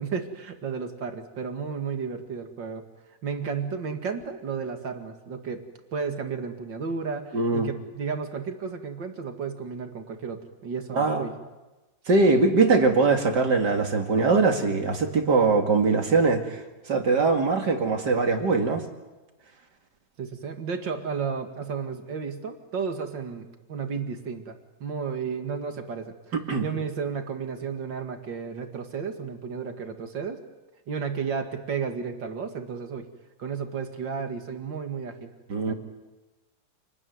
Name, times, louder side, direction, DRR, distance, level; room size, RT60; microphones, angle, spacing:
voice 1, 0.0-2.8 3.2-5.6 5.9-11.3 20.2-26.2 26.6-30.4 30.9-33.1 33.4-35.3 35.7-35.8, right 6 dB, 80° right, 6 dB, 2.8 m, -33 dB
voice 2, 7.3-7.7 10.9-11.3 12.1-18.8 26.3-26.7 35.5-35.7, right 4 dB, 65° right, 4 dB, 2.9 m, -22 dB
28.0 x 20.0 x 9.5 m, 1.1 s
omnidirectional pair, 1.9 m